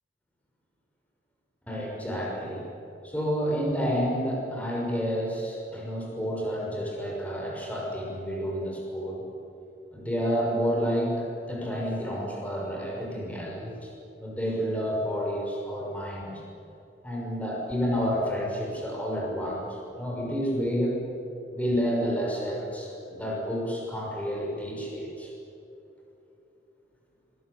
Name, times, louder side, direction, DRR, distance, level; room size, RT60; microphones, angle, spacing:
voice 1, 1.7-2.6 3.0-9.2 9.9-16.4 17.0-21.0 21.5-25.3, equal, 10° left, -2 dB, 6.3 m, -30 dB
26.5 x 22.0 x 9.9 m, 2.9 s
head